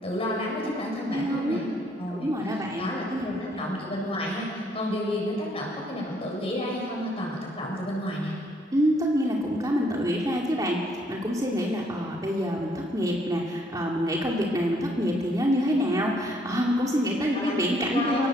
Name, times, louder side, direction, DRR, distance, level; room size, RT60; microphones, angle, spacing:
voice 1, 0.0-1.7 2.0-2.3 2.8-8.4 11.5-11.6 17.3-17.6 17.9-18.3, left 1 dB, 30° left, -2 dB, 7.4 m, -31 dB
voice 2, 1.1-1.6 2.1-3.7 8.7-18.3, equal, 20° right, -2 dB, 2.6 m, -26 dB
29.0 x 18.5 x 8.0 m, 2.3 s
head